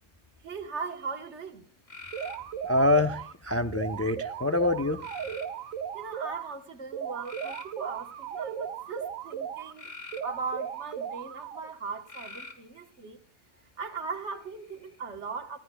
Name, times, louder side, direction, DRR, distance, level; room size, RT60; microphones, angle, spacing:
voice 1, 0.4-1.7 5.9-9.9 10.2-13.2 13.8-15.6, right 4 dB, 60° right, 1.6 m, -38 dB
sound 1, 1.9-2.9 5.0-5.8 7.2-8.5 9.8-10.9 12.0-12.7 14.4-15.0, left 3 dB, 65° left, 2.2 m, -45 dB
sound 2, 2.1-3.3 3.7-6.5 6.9-9.7 10.1-11.7, right 8 dB, 85° right, 1.1 m, -37 dB
voice 2, 2.6-5.1, left 2 dB, 20° left, 0.4 m, -26 dB
19.5 x 14.5 x 2.3 m
omnidirectional pair, 1.4 m